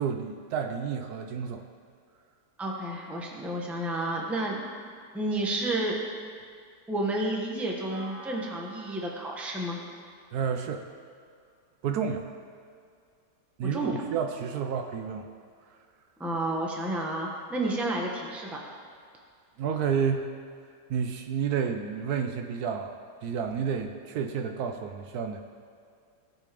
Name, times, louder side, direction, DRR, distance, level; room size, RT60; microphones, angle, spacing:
voice 1, 0.0-1.6 10.3-10.9 11.8-12.3 13.6-15.3 19.6-20.3 20.9-23.0 23.2-25.4, right 7 dB, 70° right, 5 dB, 1.1 m, -30 dB
voice 2, 2.6-4.7 5.1-6.0 6.9-9.8 13.7-13.9 16.2-18.6, right 1 dB, ahead, -1 dB, 0.8 m, -31 dB
sound 1, 7.9-11.8, right 2 dB, 20° right, 2.3 m, -51 dB
17.0 x 5.9 x 3.4 m, 2.2 s
omnidirectional pair, 1.8 m